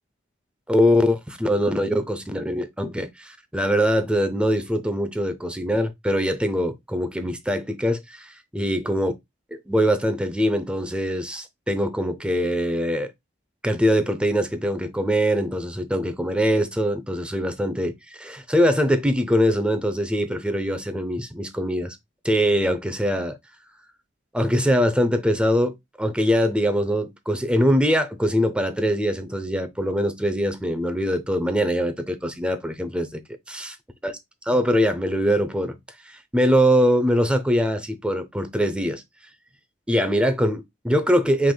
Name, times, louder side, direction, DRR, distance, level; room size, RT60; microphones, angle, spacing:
voice 1, 0.7-9.1 9.5-13.1 13.6-17.9 18.2-22.0 22.2-23.4 24.3-33.2 33.5-33.7 34.0-34.1 34.5-35.8 36.3-39.0 39.9-41.5, equal, 5° right, 0.6 m, -22 dB
6.1 x 3.4 x 2.2 m
head